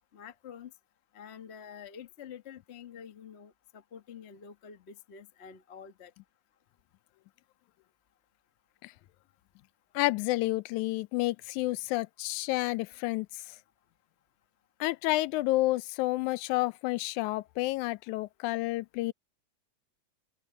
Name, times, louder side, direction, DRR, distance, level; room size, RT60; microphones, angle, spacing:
voice 1, 0.1-0.7 1.1-6.1, left 7 dB, 70° left, 0.6 m, -48 dB
voice 2, 10.0-13.4 14.8-19.1, left 19 dB, 90° left, 2.0 m, -30 dB
open air
omnidirectional pair, 3.4 m